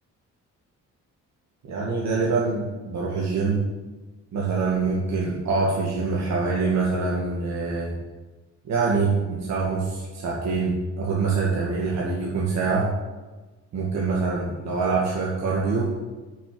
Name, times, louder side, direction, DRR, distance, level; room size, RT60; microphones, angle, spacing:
voice 1, 1.6-3.6 4.3-7.9 8.6-12.9 13.7-15.9, right 4 dB, 65° right, -5 dB, 2.2 m, -25 dB
8.7 x 6.7 x 7.8 m, 1.2 s
cardioid pair, 90°, 30 cm